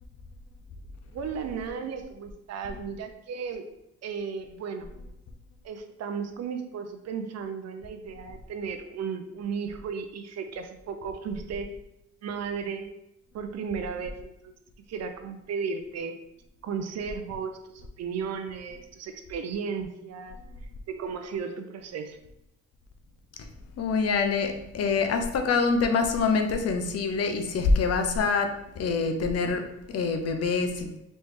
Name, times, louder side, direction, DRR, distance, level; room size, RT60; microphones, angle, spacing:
voice 1, 1.1-3.7 4.0-4.9 5.6-11.8 12.2-12.9 13.3-14.5 14.9-16.2 16.6-20.4 20.9-22.2, right 6 dB, 60° right, 7 dB, 0.5 m, -35 dB
voice 2, 23.8-31.0, left 4 dB, 55° left, 6 dB, 0.6 m, -25 dB
4.2 x 3.2 x 3.1 m, 0.85 s
cardioid pair, 90°, 30 cm